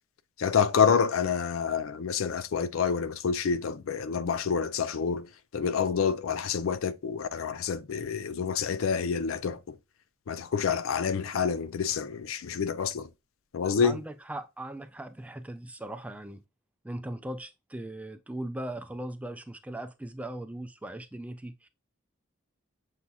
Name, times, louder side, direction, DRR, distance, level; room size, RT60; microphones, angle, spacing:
voice 1, 0.4-5.3 5.5-9.7 10.3-13.1 13.5-14.0, left 6 dB, 85° left, 0.4 m, -28 dB
voice 2, 13.8-16.4 16.8-21.7, right 1 dB, 5° right, 0.3 m, -39 dB
7.2 x 2.7 x 2.3 m
head